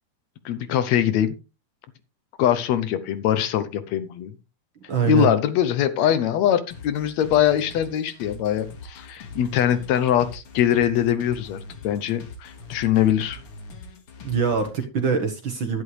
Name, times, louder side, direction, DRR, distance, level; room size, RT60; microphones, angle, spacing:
voice 1, 0.5-1.3 2.4-4.3 5.1-13.4, left 10 dB, 75° left, 12 dB, 1.9 m, -22 dB
voice 2, 4.9-5.3 14.2-15.8, right 6 dB, 55° right, 6 dB, 1.6 m, -23 dB
sound 1, 6.7-14.7, left 3 dB, 50° left, 2.5 m, -42 dB
11.0 x 10.5 x 3.3 m, 0.29 s
omnidirectional pair, 3.4 m